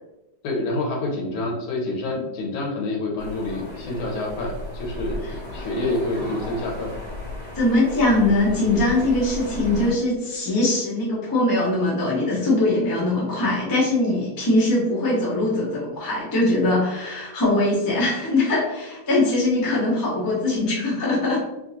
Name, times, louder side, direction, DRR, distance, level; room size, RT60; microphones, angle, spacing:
voice 1, 0.4-7.0, left 2 dB, 80° left, 0 dB, 1.6 m, -27 dB
sound 1, 3.2-9.9, left 2 dB, 15° right, 1.1 m, -35 dB
voice 2, 7.5-21.4, left 2 dB, 25° left, -5 dB, 0.5 m, -21 dB
3.7 x 2.8 x 2.6 m, 0.98 s
omnidirectional pair, 2.2 m